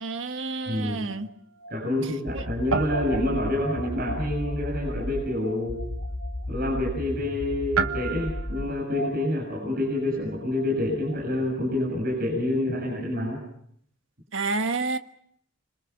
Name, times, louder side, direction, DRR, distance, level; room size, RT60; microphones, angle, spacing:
voice 1, 0.0-1.3 14.3-15.0, right 3 dB, 65° right, 7 dB, 1.5 m, -29 dB
Guitar, 0.6-2.4 2.7-11.3, right 4 dB, 85° right, 1.4 m, -35 dB
voice 2, 0.7-1.1 1.7-5.8 6.5-13.4, left 1 dB, 45° right, -2 dB, 7.4 m, -27 dB
sound 1, 2.3-5.3 5.7-8.7, left 1 dB, 75° left, 3.7 m, -34 dB
26.0 x 26.0 x 5.8 m, 0.69 s
head